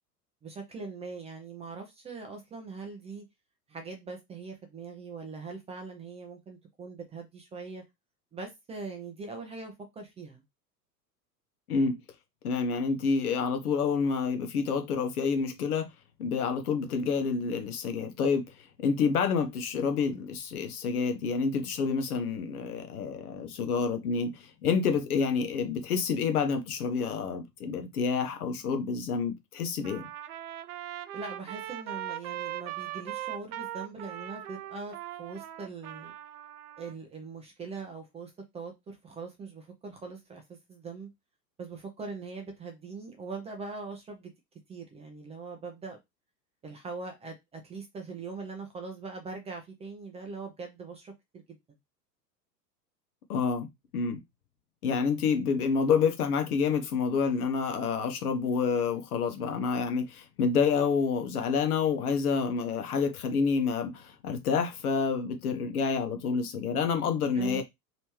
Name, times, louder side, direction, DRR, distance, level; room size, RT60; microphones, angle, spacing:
voice 1, 0.4-3.2 3.7-7.8 8.3-10.4 31.1-36.1 36.8-41.1 41.6-44.3 44.7-46.0 46.6-51.6 67.3-67.6, right 4 dB, 15° right, 0.6 m, -41 dB
voice 2, 11.7-12.0 12.4-15.9 16.2-18.5 18.8-30.1 53.3-53.7 53.9-54.2 54.8-67.6, left 5 dB, 60° left, 1.0 m, -28 dB
Trumpet, 29.8-36.9, right 12 dB, 65° right, 0.5 m, -39 dB
3.1 x 3.0 x 3.0 m
figure-of-eight pair, 90°, 49 cm